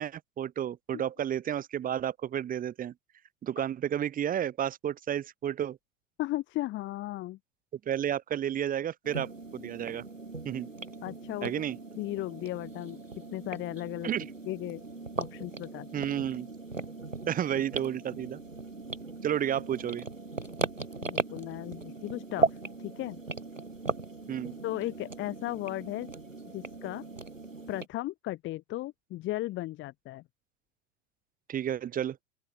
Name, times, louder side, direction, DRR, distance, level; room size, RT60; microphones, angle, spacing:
voice 1, 0.0-2.9 3.4-5.8 7.9-10.0 10.4-10.7 11.4-11.8 14.0-14.3 15.9-16.5 17.3-18.4 19.2-20.0 24.3-24.6 31.5-32.2, right 10 dB, 20° right, 0.9 m, -31 dB
voice 2, 6.2-7.4 11.0-11.5 12.0-13.0 13.3-14.1 14.5-14.8 15.2-15.9 21.0-22.5 22.8-23.2 24.6-26.1 26.5-27.0 27.7-30.2, left 16 dB, 30° left, 0.9 m, -36 dB
sound 1, 9.0-27.9, right 3 dB, 90° right, 4.7 m, -38 dB
open air
figure-of-eight pair, 85°, 38 cm